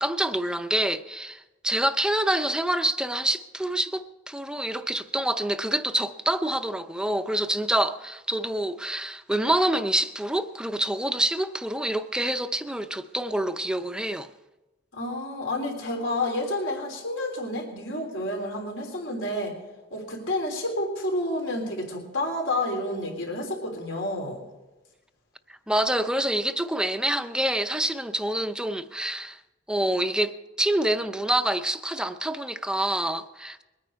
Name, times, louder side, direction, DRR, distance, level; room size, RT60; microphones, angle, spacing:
voice 1, 0.0-14.3 25.5-29.4 29.7-33.6, right 1 dB, 5° right, 0.5 m, -27 dB
voice 2, 14.9-19.5 19.9-24.4, left 1 dB, 80° left, 3.5 m, -30 dB
22.0 x 9.5 x 4.6 m
head